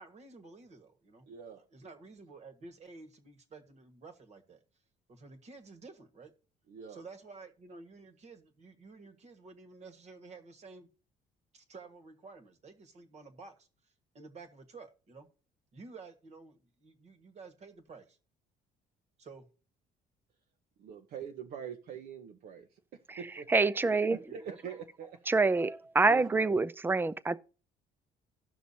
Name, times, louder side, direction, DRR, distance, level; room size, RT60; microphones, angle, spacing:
voice 1, 0.0-1.3 1.7-4.6 5.1-6.3 6.9-10.9 11.5-15.3 15.7-18.2 19.2-19.5 24.3-24.8, right 4 dB, 40° right, 1.5 m, -51 dB
voice 2, 1.3-1.6 6.7-7.0 20.8-23.5 24.1-25.1 26.0-26.6, right 7 dB, 70° right, 1.0 m, -44 dB
voice 3, 23.5-24.2 25.3-27.4, right 3 dB, 10° right, 0.4 m, -26 dB
17.0 x 6.0 x 2.8 m
cardioid pair, 110°, 17 cm